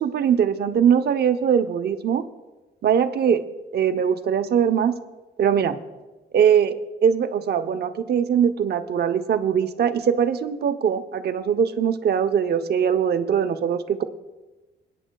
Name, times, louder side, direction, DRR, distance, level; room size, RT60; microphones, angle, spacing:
voice 1, 0.0-2.2 2.8-3.4 3.7-4.9 5.4-5.8 6.3-6.7 7.0-14.0, right 8 dB, 55° right, 9 dB, 0.8 m, -21 dB
27.0 x 9.1 x 2.3 m, 1.1 s
cardioid pair, 90°, 20 cm